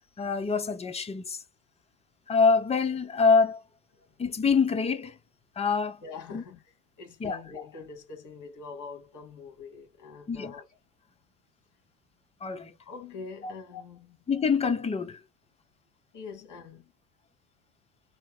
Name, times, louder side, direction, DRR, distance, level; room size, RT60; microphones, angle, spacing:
voice 1, 0.2-1.4 2.3-3.6 4.2-5.2 5.6-6.0 6.3-6.4 7.2-7.4 10.3-10.6 12.4-12.7 13.4-13.5 14.3-15.2, left 4 dB, 15° left, 0.6 m, -25 dB
voice 2, 6.0-10.6 12.8-14.2 16.1-16.9, left 5 dB, 40° left, 2.5 m, -44 dB
4.1 x 2.1 x 3.7 m
hypercardioid pair, 85°, 46 cm